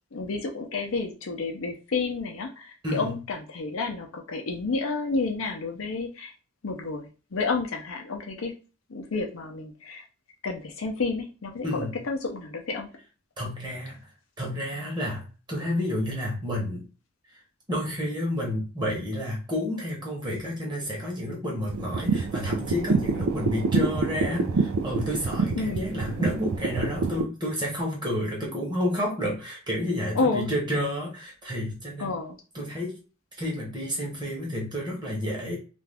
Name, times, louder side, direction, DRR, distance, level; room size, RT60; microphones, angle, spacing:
voice 1, 0.1-2.7 2.9-6.3 6.6-8.5 8.9-10.0 10.4-12.9 25.6-25.9 30.1-30.5 32.0-32.4, left 4 dB, 70° left, 3 dB, 0.6 m, -30 dB
voice 2, 2.8-3.2 11.6-12.0 13.4-14.0 14.4-16.9 17.7-32.2 32.5-33.0 33.4-35.6, left 1 dB, 20° right, -2 dB, 0.9 m, -30 dB
sound 1, 21.7-27.2, right 4 dB, 80° right, 0.4 m, -27 dB
2.5 x 2.3 x 3.4 m, 0.34 s
head